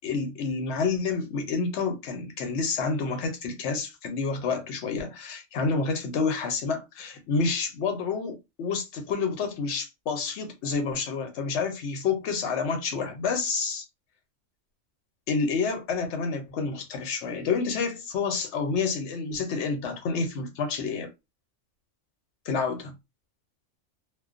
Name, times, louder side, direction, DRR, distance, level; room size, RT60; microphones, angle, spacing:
voice 1, 0.0-13.8 15.3-21.1 22.5-22.9, left 4 dB, 70° left, 0.9 m, -29 dB
2.3 x 2.2 x 2.4 m
omnidirectional pair, 1.3 m